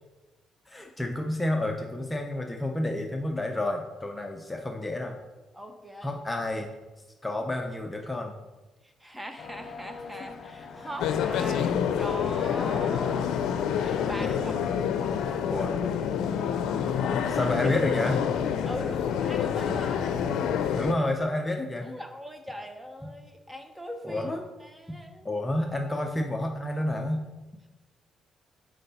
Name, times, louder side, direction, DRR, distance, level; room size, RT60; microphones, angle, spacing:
voice 1, 0.7-5.1 6.0-6.7 7.2-8.3 14.2-14.5 15.5-15.7 17.3-18.2 20.7-22.0 23.0-23.1 24.0-24.5 24.9-25.0 25.2-27.3, left 1 dB, 15° left, 2 dB, 0.7 m, -30 dB
voice 2, 5.5-6.2 8.8-13.3 13.8-14.6 17.3-17.5 18.6-20.1 21.8-24.2 24.6-25.3, equal, 10° right, 6 dB, 0.9 m, -40 dB
sound 1, 9.4-20.7, left 5 dB, 60° left, 0.9 m, -42 dB
sound 2, 11.0-20.9, left 8 dB, 85° left, 0.5 m, -27 dB
6.5 x 4.6 x 5.5 m, 1.1 s
cardioid pair, 90°, 0 cm